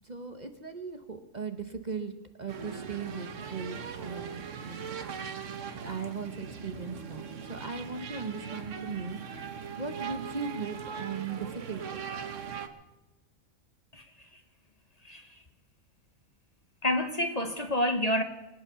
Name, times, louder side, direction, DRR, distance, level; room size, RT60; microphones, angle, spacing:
voice 1, 0.0-2.1 2.4-5.0 5.8-9.3 9.8-12.0, right 5 dB, 35° right, 1.0 m, -38 dB
sound 1, 2.5-12.7, right 7 dB, 70° right, 1.4 m, -40 dB
voice 2, 13.9-14.4 15.0-15.4 16.8-18.2, left 1 dB, 30° left, 1.2 m, -29 dB
23.5 x 8.8 x 6.8 m
omnidirectional pair, 1.3 m